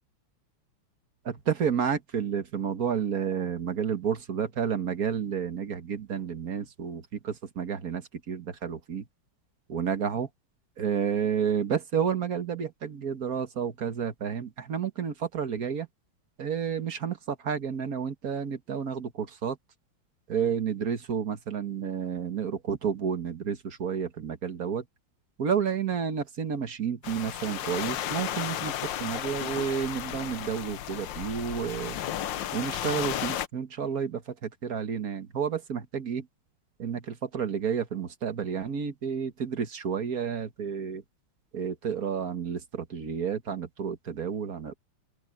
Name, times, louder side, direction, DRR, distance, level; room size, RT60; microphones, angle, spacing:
voice 1, 1.3-9.0 9.7-10.3 10.8-15.9 16.4-19.6 20.3-24.9 25.4-28.7 29.0-32.0 32.5-36.3 36.8-41.0 41.5-44.8, right 7 dB, 45° right, 1.6 m, -30 dB
sound 1, 27.0-33.5, left 11 dB, 65° left, 1.4 m, -33 dB
open air
omnidirectional pair, 2.4 m